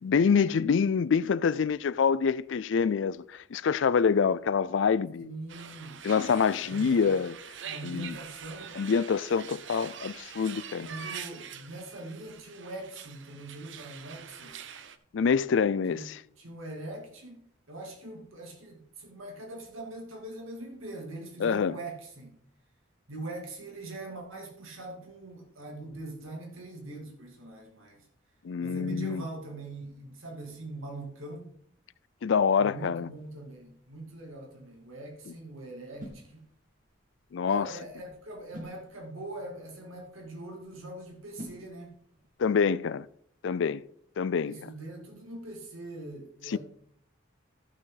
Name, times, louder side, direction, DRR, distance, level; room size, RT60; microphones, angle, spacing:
voice 1, 0.0-5.3 6.0-7.3 7.8-8.1 8.8-10.9 15.1-16.0 21.4-21.7 28.4-29.2 32.2-33.1 37.3-37.7 42.4-43.1 43.4-43.8 44.2-44.6 46.5-46.6, left 6 dB, 65° left, 0.4 m, -26 dB
voice 2, 5.2-6.0 6.6-7.0 7.6-8.8 10.8-14.6 15.9-16.1 16.4-22.3 23.1-28.0 28.6-31.5 32.6-36.5 37.5-41.9 44.4-46.6, right 2 dB, 85° right, 2.6 m, -42 dB
sound 1, 5.5-15.0, right 8 dB, 65° right, 0.7 m, -44 dB
sound 2, 33.2-42.4, equal, 40° right, 1.8 m, -53 dB
14.0 x 6.2 x 3.9 m
head